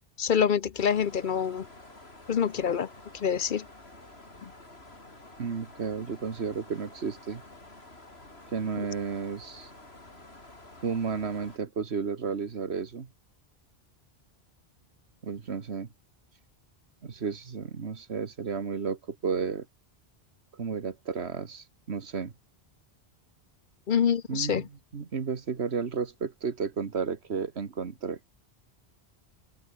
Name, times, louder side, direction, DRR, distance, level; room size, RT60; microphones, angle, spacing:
voice 1, 0.2-1.7 2.3-2.9 3.2-3.7 23.9-24.6, left 7 dB, 55° left, 0.8 m, -26 dB
sound 1, 0.8-11.6, left 2 dB, 75° left, 5.3 m, -50 dB
voice 2, 5.4-7.4 8.5-9.7 10.8-13.1 15.2-15.9 17.0-19.7 20.6-22.3 24.3-24.7 24.9-28.2, right 5 dB, 85° right, 1.8 m, -32 dB
omnidirectional pair, 1.1 m